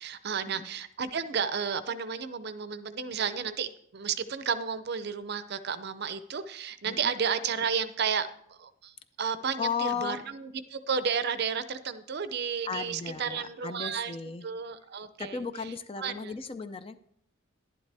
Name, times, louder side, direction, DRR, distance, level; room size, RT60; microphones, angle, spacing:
voice 1, 0.0-14.2 14.4-15.7 16.0-16.3, right 6 dB, 50° right, 13 dB, 0.5 m, -32 dB
voice 2, 9.6-10.2 12.7-14.4 15.2-17.0, left 6 dB, 25° left, 11 dB, 0.4 m, -35 dB
11.0 x 11.0 x 3.4 m, 0.70 s
head